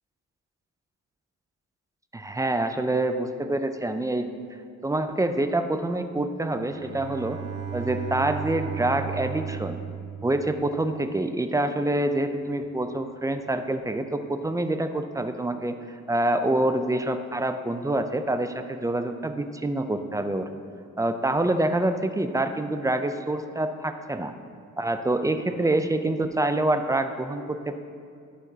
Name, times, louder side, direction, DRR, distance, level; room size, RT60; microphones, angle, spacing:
voice 1, 2.1-4.3 4.8-7.4 7.7-9.8 10.2-20.5 21.0-24.3 24.8-27.8, right 1 dB, 10° right, 8 dB, 0.3 m, -26 dB
Bowed string instrument, 6.7-11.0, right 7 dB, 45° right, 1.0 m, -35 dB
11.5 x 6.0 x 2.7 m, 2.4 s
cardioid pair, 100°, 33 cm